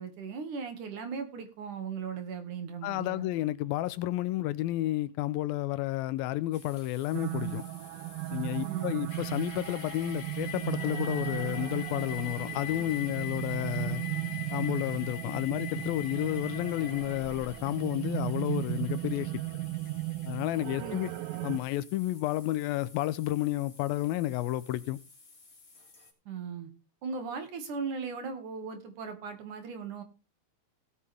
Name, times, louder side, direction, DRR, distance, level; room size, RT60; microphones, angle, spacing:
voice 1, 0.0-3.3 8.6-9.0 20.8-21.0 26.3-26.7 27.0-30.0, right 5 dB, 60° right, 3.3 m, -38 dB
voice 2, 2.8-7.6 8.3-14.0 14.5-19.3 20.3-21.1 21.4-25.0, left 15 dB, 80° left, 2.5 m, -31 dB
sound 1, 6.5-26.1, left 3 dB, 25° left, 3.2 m, -54 dB
sound 2, 7.1-21.6, right 17 dB, 80° right, 2.4 m, -36 dB
sound 3, 9.1-21.6, left 9 dB, 50° left, 3.7 m, -43 dB
17.5 x 8.4 x 3.5 m
omnidirectional pair, 4.2 m